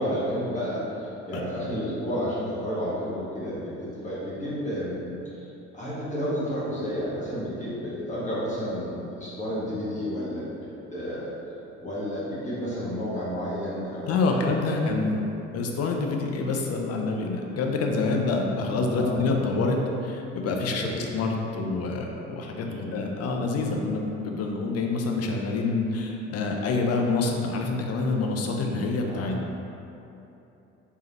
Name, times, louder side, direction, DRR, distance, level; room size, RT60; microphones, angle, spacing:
voice 1, 0.0-5.0 5.4-5.5 5.7-10.4 10.9-11.3 11.8-15.3 18.9-19.2 20.8-21.0 22.7-22.9 29.1-29.3, equal, 20° left, -10 dB, 1.4 m, -31 dB
voice 2, 14.0-15.3 15.5-20.9 21.1-29.6, left 3 dB, 45° left, 1 dB, 0.6 m, -27 dB
3.6 x 3.3 x 2.9 m, 2.9 s
hypercardioid pair, 55°, 35 cm